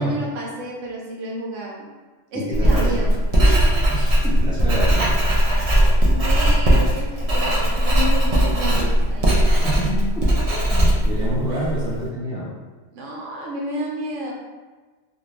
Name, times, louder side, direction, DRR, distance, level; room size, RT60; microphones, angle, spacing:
voice 1, 0.0-1.9 2.3-3.7 5.5-9.6 10.5-10.6 11.5-11.8 12.9-14.3, equal, 80° right, -2 dB, 1.0 m, -31 dB
Writing, 2.5-11.9, equal, 50° right, 0.4 m, -18 dB
voice 2, 2.6-3.0 3.9-5.1 9.6-10.3 10.7-12.5, right 1 dB, 5° right, -9 dB, 0.6 m, -27 dB
2.6 x 2.5 x 3.1 m, 1.3 s
omnidirectional pair, 1.3 m